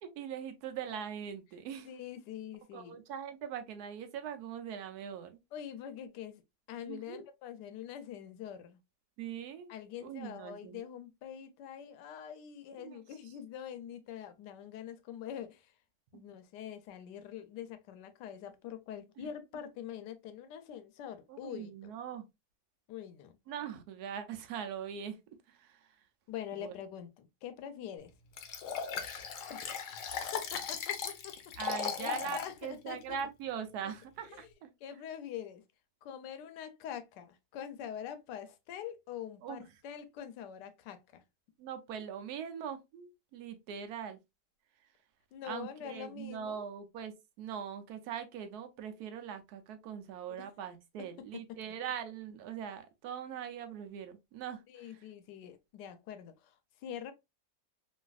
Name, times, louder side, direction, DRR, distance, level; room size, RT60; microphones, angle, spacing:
voice 1, 0.0-1.9 2.7-5.4 6.8-7.2 9.2-9.7 10.0-10.8 12.8-13.3 16.1-16.2 19.2-19.3 21.3-22.3 23.5-25.2 25.5-26.0 26.5-26.7 31.6-34.7 39.4-39.8 41.6-44.2 45.4-55.1, right 8 dB, 75° right, 1.1 m, -42 dB
voice 2, 1.8-3.0 5.5-6.4 6.7-8.8 9.7-15.7 16.1-21.9 22.9-23.3 26.3-28.1 29.5-29.6 30.3-31.4 32.0-33.0 34.8-35.6 36.0-41.2 45.3-46.6 50.3-50.4 54.7-56.5 56.8-57.1, left 9 dB, 90° left, 1.2 m, -44 dB
Liquid, 28.4-32.5 33.0-33.1, left 7 dB, 65° left, 0.8 m, -37 dB
3.1 x 2.6 x 2.3 m
omnidirectional pair, 1.8 m